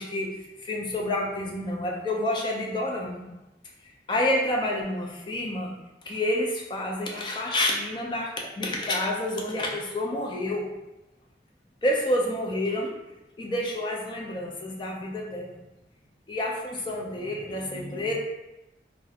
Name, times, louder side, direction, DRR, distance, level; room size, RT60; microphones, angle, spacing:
voice 1, 0.0-3.2 4.1-5.7 6.1-10.7 11.8-12.9 13.4-15.6 16.3-18.1, left 1 dB, 25° left, -1 dB, 0.3 m, -29 dB
2.4 x 2.0 x 2.6 m, 0.97 s
head